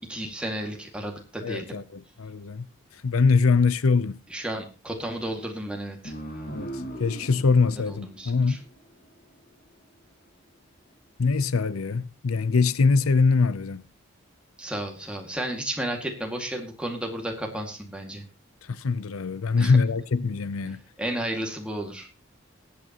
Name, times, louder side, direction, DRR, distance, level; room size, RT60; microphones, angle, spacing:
voice 1, 0.0-1.8 4.3-6.1 7.7-8.6 14.6-18.2 19.6-19.8 20.7-22.1, right 1 dB, 5° right, 2.1 m, -33 dB
voice 2, 1.4-2.7 3.0-4.2 6.5-6.7 7.0-8.6 11.2-13.8 18.7-20.8, left 4 dB, 90° left, 0.6 m, -23 dB
sound 1, 6.0-9.2, right 1 dB, 45° left, 2.6 m, -39 dB
21.5 x 8.6 x 3.0 m
head